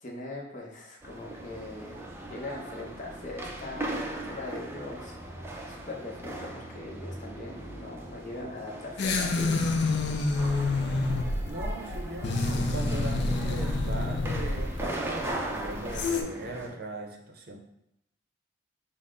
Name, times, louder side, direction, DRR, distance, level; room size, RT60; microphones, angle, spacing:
voice 1, 0.0-5.2 5.7-9.7, left 2 dB, 40° left, -1 dB, 0.8 m, -41 dB
sound 1, 1.0-16.7, right 1 dB, 15° right, 0.4 m, -39 dB
sound 2, 9.0-16.2, left 3 dB, 65° left, 0.5 m, -28 dB
voice 2, 11.4-17.6, right 1 dB, 55° right, 3 dB, 0.6 m, -39 dB
5.5 x 2.0 x 3.7 m, 0.81 s
head